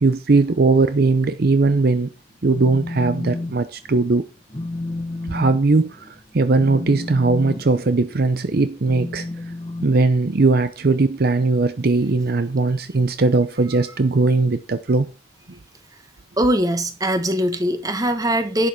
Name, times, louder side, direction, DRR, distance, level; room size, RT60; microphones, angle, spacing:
voice 1, 0.0-2.1 2.4-4.2 5.3-9.3 9.8-15.1, right 3 dB, 50° right, 0.6 m, -19 dB
Telephone, 2.3-3.5 3.9-4.2 4.5-10.6, left 2 dB, 25° left, 1.1 m, -32 dB
voice 2, 16.4-18.7, equal, 20° right, 1.4 m, -21 dB
11.0 x 7.4 x 4.5 m
head